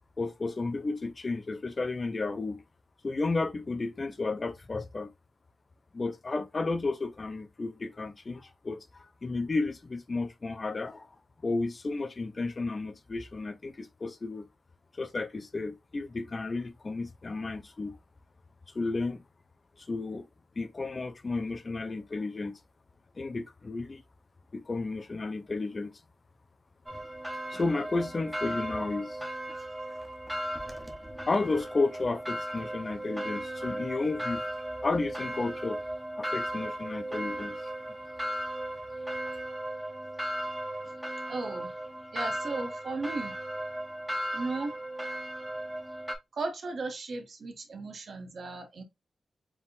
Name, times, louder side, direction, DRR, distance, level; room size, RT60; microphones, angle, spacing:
voice 1, 0.2-2.6 3.0-5.1 5.9-11.1 11.4-14.5 14.9-18.0 18.7-19.2 19.8-20.3 20.6-22.6 23.2-24.0 24.5-25.9 27.5-29.3 31.3-34.4 34.8-35.8 36.2-37.6, left 3 dB, 35° left, 0.5 m, -32 dB
sound 1, 26.9-46.2, right 1 dB, 5° right, 0.8 m, -36 dB
voice 2, 41.3-41.7 42.1-43.4 44.3-44.7 46.3-48.8, right 3 dB, 60° right, 0.9 m, -36 dB
4.5 x 3.5 x 2.5 m
wide cardioid pair, 125°, 0 cm